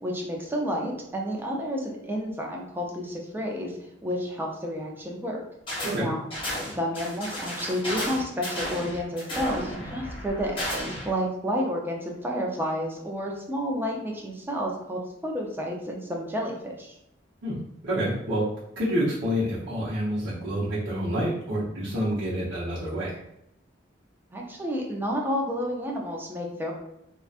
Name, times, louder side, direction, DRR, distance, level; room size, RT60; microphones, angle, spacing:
voice 1, 0.0-5.4 6.0-6.2 6.8-10.8 11.0-16.9 24.3-26.7, equal, 10° right, -1 dB, 0.4 m, -30 dB
sound 1, 5.7-6.0 6.3-11.1, equal, 30° left, 0.9 m, -33 dB
voice 2, 17.8-18.4 18.8-23.2, equal, 65° right, -12 dB, 0.8 m, -28 dB
2.8 x 2.2 x 2.4 m, 0.81 s
head